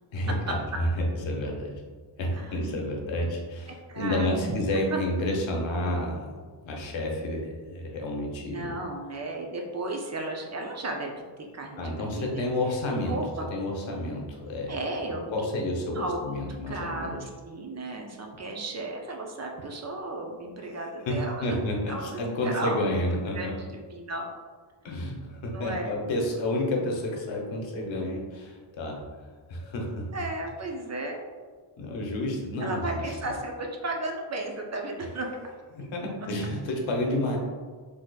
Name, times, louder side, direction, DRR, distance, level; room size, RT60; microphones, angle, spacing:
voice 1, 0.1-1.7 2.2-6.4 6.6-8.7 11.8-13.2 13.5-14.8 15.1-17.1 20.8-23.6 24.8-29.0 29.5-30.1 31.8-33.2 35.7-37.4, left 1 dB, 90° left, 0 dB, 0.8 m, -30 dB
voice 2, 2.4-3.0 3.9-4.5 4.9-5.0 8.4-12.5 13.1-13.4 14.7-15.3 15.9-21.6 21.9-22.8 23.3-24.3 25.0-26.0 30.1-31.2 32.6-35.3, right 2 dB, 40° right, 1 dB, 0.4 m, -34 dB
3.8 x 2.7 x 2.2 m, 1.5 s
wide cardioid pair, 115°, 45 cm